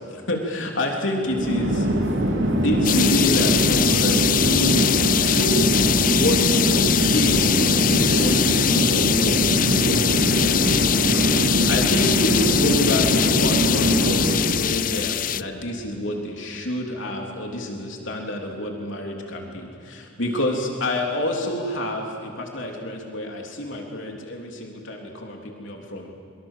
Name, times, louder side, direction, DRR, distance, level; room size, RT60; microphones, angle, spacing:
voice 1, 0.0-1.9 2.6-5.6 6.1-26.1, left 1 dB, 85° left, 0 dB, 3.4 m, -28 dB
Chatter / Fixed-wing aircraft airplane, 1.2-14.6, right 1 dB, 75° right, 3.2 m, -22 dB
sound 1, 2.8-15.4, left 10 dB, 45° left, 0.5 m, -22 dB
27.0 x 24.0 x 7.6 m, 2.4 s
head